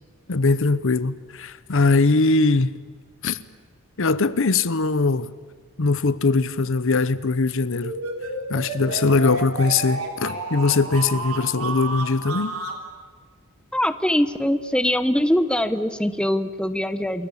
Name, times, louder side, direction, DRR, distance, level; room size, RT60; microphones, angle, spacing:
voice 1, 0.3-2.7 3.2-3.4 4.0-5.3 5.8-8.0 8.5-12.6, left 3 dB, 60° left, 0.8 m, -21 dB
sound 1, 7.8-12.8, right 3 dB, 75° right, 3.6 m, -31 dB
voice 2, 13.7-17.3, left 1 dB, 5° left, 0.9 m, -22 dB
28.0 x 22.0 x 8.6 m
head